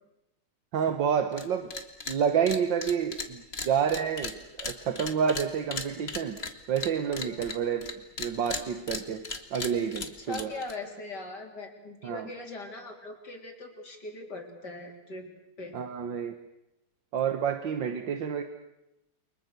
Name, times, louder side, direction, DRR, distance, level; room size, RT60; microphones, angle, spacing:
voice 1, 0.7-1.7 2.1-6.4 6.7-7.9 8.2-10.5 12.0-12.3 15.7-16.4 17.1-18.4, right 7 dB, 80° right, 8 dB, 1.9 m, -29 dB
sound 1, 1.3-1.4 1.7-2.2 2.5-7.9 8.2-10.7, left 3 dB, 35° left, 2.0 m, -36 dB
voice 2, 10.2-15.3 15.6-15.7, left 2 dB, 65° left, 2 dB, 4.4 m, -40 dB
29.5 x 24.0 x 6.7 m, 0.91 s
omnidirectional pair, 2.0 m